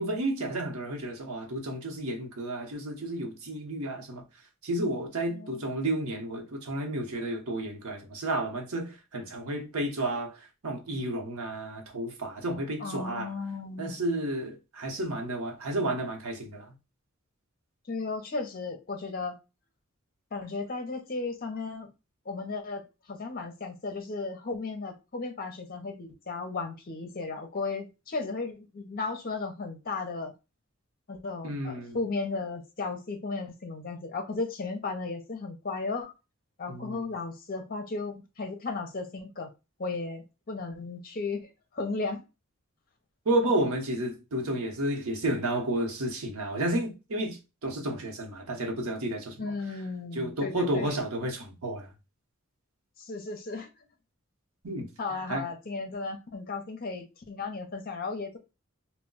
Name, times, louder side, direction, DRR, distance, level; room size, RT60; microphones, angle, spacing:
voice 1, 0.0-4.2 4.6-10.3 10.6-13.3 13.8-16.7 31.4-32.0 36.7-37.1 43.3-49.5 50.1-51.9 54.6-54.9 55.3-55.5, right 1 dB, 80° right, 0.8 m, -31 dB
voice 2, 5.3-5.7 12.8-14.0 17.9-19.4 20.3-21.9 22.3-22.8 23.1-30.3 31.1-36.1 36.6-39.5 39.8-42.2 49.4-50.9 53.0-53.7 55.0-58.4, left 3 dB, 40° left, 0.6 m, -35 dB
2.2 x 2.1 x 3.8 m
head